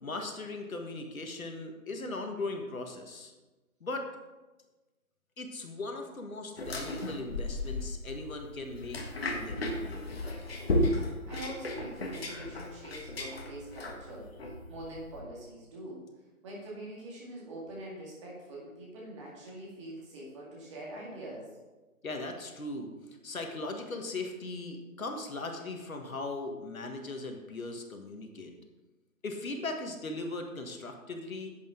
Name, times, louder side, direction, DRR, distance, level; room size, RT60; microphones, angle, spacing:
voice 1, 0.0-3.3 3.8-4.1 5.4-9.0 9.2-10.1 22.0-22.9 23.2-28.5 29.2-31.5, left 2 dB, 65° left, 4 dB, 1.7 m, -38 dB
sound 1, 6.6-15.2, left 1 dB, 40° left, 1.6 m, -35 dB
voice 2, 11.2-16.0 16.4-21.5, right 1 dB, 20° right, -4 dB, 2.1 m, -44 dB
10.5 x 7.9 x 3.8 m, 1.2 s
figure-of-eight pair, 160°, 44 cm